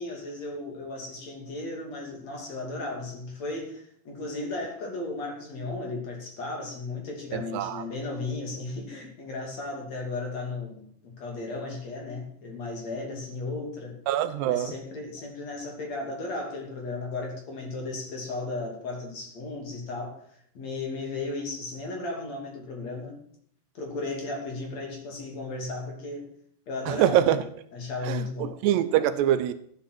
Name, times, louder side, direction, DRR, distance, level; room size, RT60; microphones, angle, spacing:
voice 1, 0.0-14.0 14.4-20.2 20.6-23.1 23.8-26.3 26.7-27.4 27.7-28.5, left 3 dB, 45° left, 3.5 m, -35 dB
voice 2, 7.3-7.8 14.1-14.7 26.9-27.4 28.1-29.5, right 11 dB, 80° right, 2.8 m, -24 dB
13.5 x 9.9 x 6.1 m
omnidirectional pair, 5.0 m